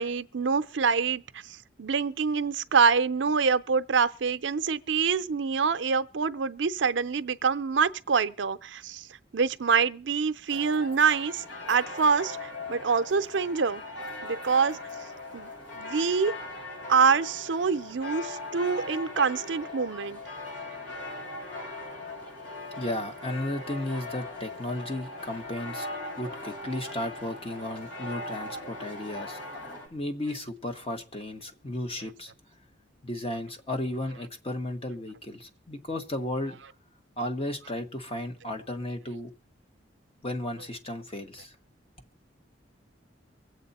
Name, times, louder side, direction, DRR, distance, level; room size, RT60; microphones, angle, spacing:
voice 1, 0.0-9.0 9.3-13.8 14.2-14.8 15.3-16.3 16.9-20.2, right 5 dB, 75° right, 0.6 m, -26 dB
sound 1, 10.5-29.9, left 2 dB, 75° left, 6.9 m, -39 dB
voice 2, 22.8-25.9 26.2-29.4 29.9-32.3 33.0-36.6 37.2-39.3 40.2-41.5, left 1 dB, 30° left, 1.3 m, -34 dB
24.0 x 8.1 x 4.2 m
head